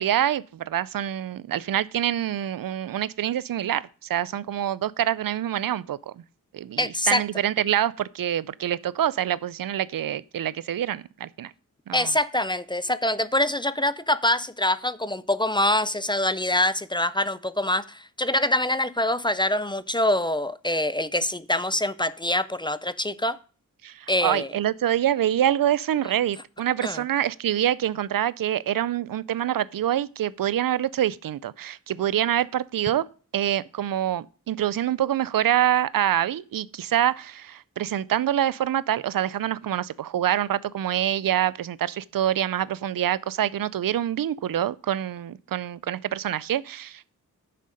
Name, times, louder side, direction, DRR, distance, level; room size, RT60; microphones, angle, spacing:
voice 1, 0.0-3.8 4.1-6.2 6.5-11.5 11.9-12.1 23.8-33.0 33.3-47.1, right 11 dB, 85° right, 0.5 m, -26 dB
voice 2, 6.8-7.2 11.9-23.4 24.1-24.5 26.8-27.0, left 1 dB, 15° left, 0.4 m, -25 dB
10.5 x 6.7 x 5.0 m
wide cardioid pair, 155°, 33 cm